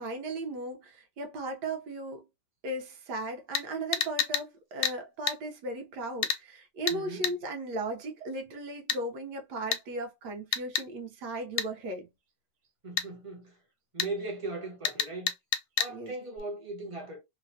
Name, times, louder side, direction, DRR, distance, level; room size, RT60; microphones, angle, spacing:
voice 1, 0.0-2.3 2.6-12.1 15.9-16.1, right 2 dB, 75° right, 1.3 m, -36 dB
sound 1, 3.5-3.7 3.9-4.5 4.8-5.0 5.3-5.4 6.2-6.4 6.9-7.0 7.2-7.4 8.9-9.0 9.7-9.8 10.5-10.9 11.6-11.7 13.0-13.1 14.0-14.1 14.8-15.9 16.4-16.5, left 8 dB, 70° left, 0.9 m, -29 dB
voice 2, 6.9-7.3 12.8-13.6 13.9-15.3 15.8-17.2, right 2 dB, 30° right, 0.6 m, -38 dB
3.2 x 2.1 x 2.6 m
omnidirectional pair, 1.9 m